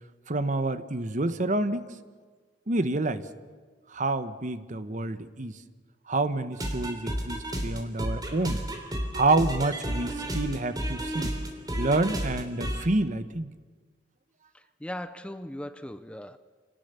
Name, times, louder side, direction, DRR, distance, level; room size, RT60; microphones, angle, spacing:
voice 1, 0.3-1.9 2.7-3.2 3.9-5.5 6.1-8.6 9.1-11.3 11.8-13.5, right 2 dB, 45° right, 12 dB, 1.1 m, -28 dB
sound 1, 6.5-12.9, equal, 20° right, 3.3 m, -32 dB
voice 2, 14.5-16.4, left 1 dB, 5° left, 12 dB, 0.6 m, -39 dB
27.0 x 19.0 x 6.9 m, 1.5 s
head